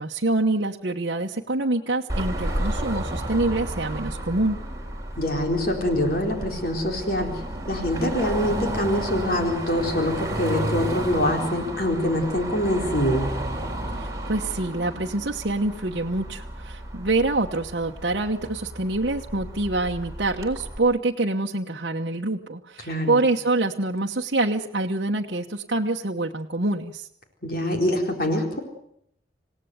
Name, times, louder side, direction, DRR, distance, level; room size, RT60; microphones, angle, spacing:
voice 1, 0.0-4.6 14.0-27.1, right 2 dB, 60° right, 0 dB, 1.1 m, -26 dB
Car passing by / Traffic noise roadway noise / Engine, 2.1-20.8, right 1 dB, 15° right, 4.0 m, -32 dB
voice 2, 5.2-7.3 7.7-13.3 22.8-23.2 27.4-28.6, left 1 dB, 50° left, 2 dB, 4.3 m, -24 dB
27.5 x 17.5 x 8.0 m, 0.75 s
head